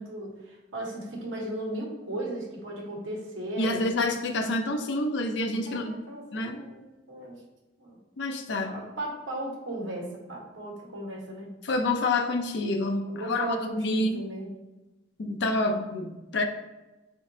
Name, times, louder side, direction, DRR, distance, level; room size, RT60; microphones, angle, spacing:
voice 1, 0.0-3.8 5.7-7.4 7.8-8.0 8.7-11.6 13.1-14.6, right 1 dB, 90° right, -2 dB, 1.2 m, -36 dB
voice 2, 3.6-5.9 6.3-6.6 8.2-8.7 11.6-14.2 15.2-16.4, left 2 dB, 65° left, 5 dB, 0.5 m, -28 dB
4.7 x 3.6 x 2.7 m, 1.0 s
head